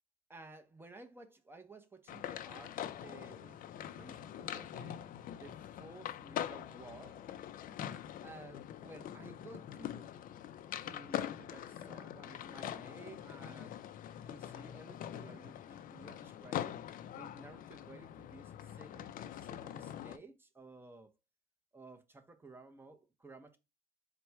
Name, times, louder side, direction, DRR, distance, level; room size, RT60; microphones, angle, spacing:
voice 1, 0.3-5.1 5.3-7.3 8.2-10.1 10.8-13.8 14.3-21.1 21.7-23.6, right 2 dB, 15° right, 0.7 m, -55 dB
sound 1, 2.1-20.2, left 10 dB, 55° left, 0.4 m, -44 dB
4.2 x 2.2 x 4.4 m
cardioid pair, 110°, 17 cm